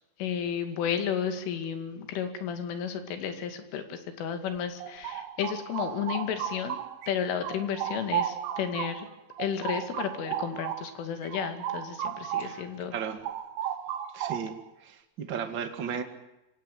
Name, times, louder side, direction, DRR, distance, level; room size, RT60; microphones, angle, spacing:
voice 1, 0.2-6.8 7.1-9.1 9.4-12.9, left 8 dB, 85° left, 8 dB, 4.8 m, -32 dB
sound 1, 4.6-7.1 7.4-12.6 12.9-14.7, right 10 dB, 80° right, 4.1 m, -34 dB
voice 2, 12.9-13.2 14.1-14.5 14.8-16.0, right 7 dB, 45° right, 7 dB, 1.5 m, -34 dB
24.5 x 17.5 x 9.4 m, 0.94 s
omnidirectional pair, 5.5 m